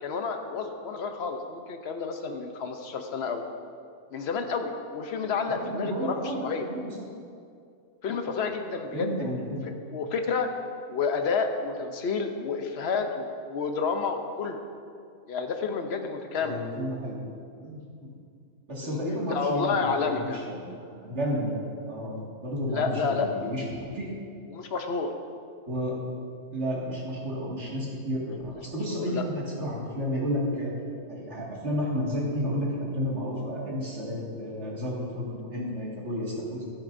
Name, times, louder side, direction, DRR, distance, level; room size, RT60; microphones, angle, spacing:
voice 1, 0.0-3.4 4.1-6.7 8.0-10.5 10.9-14.6 15.3-16.6 18.8-20.5 22.7-23.3 24.5-25.1 28.9-29.2, left 5 dB, 55° left, 5 dB, 0.9 m, -30 dB
voice 2, 5.5-6.9 8.9-9.6 16.4-17.2 17.6-18.1 18.7-24.1 25.7-26.0 26.5-30.7 31.1-36.6, equal, 45° right, -5 dB, 2.4 m, -32 dB
12.0 x 11.5 x 2.6 m, 2.3 s
omnidirectional pair, 1.6 m